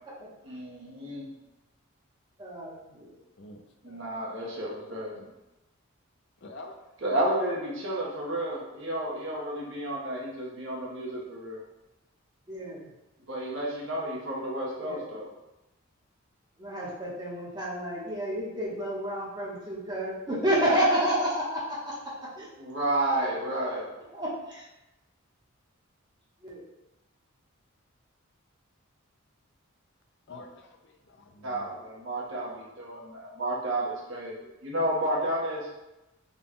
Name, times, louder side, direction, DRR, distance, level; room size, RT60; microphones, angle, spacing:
voice 1, 0.4-1.3 3.8-5.3 7.0-11.6 13.3-15.3 22.6-24.0 31.4-35.7, right 1 dB, 55° right, -3 dB, 0.9 m, -31 dB
voice 2, 2.4-3.2 12.5-12.9 14.8-15.0 16.6-21.9 22.4-22.5 24.1-24.7 26.4-26.6, right 1 dB, 20° right, -6 dB, 0.9 m, -30 dB
voice 3, 6.4-6.9 30.3-31.7, left 2 dB, 55° left, 4 dB, 0.4 m, -47 dB
3.9 x 2.3 x 3.6 m, 0.98 s
head